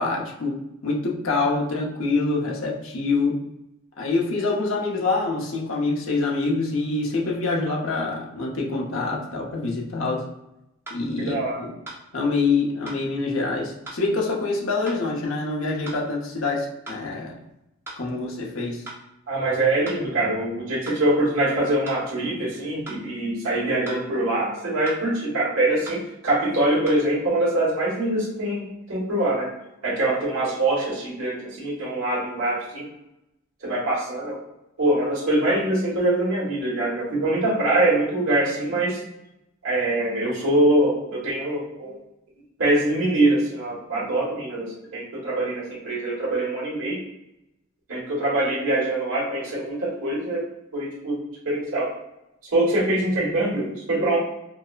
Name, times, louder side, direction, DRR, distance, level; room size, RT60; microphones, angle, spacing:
voice 1, 0.0-3.5 4.0-10.3 10.9-11.7 12.1-17.3 18.0-18.8, left 3 dB, 70° left, -2 dB, 0.7 m, -25 dB
sound 1, 10.9-11.0 11.9-12.0 12.9-13.0 13.9-14.0 14.9-15.0 15.9-16.0 16.9-17.0 17.9-18.0 18.9-19.0 19.9-20.0 20.9-21.0 21.9-22.0 22.9-23.0 23.9-24.0 24.9-25.0 25.9-26.0 26.9-27.0, right 1 dB, 10° right, 0.6 m, -38 dB
voice 2, 11.2-11.6 19.3-29.5 29.8-32.8 33.6-34.4 34.8-39.0 39.6-42.0 42.6-47.0 47.9-50.4 50.7-51.9 52.5-54.2, right 1 dB, 75° right, -6 dB, 1.4 m, -24 dB
4.5 x 2.0 x 2.4 m, 0.88 s
head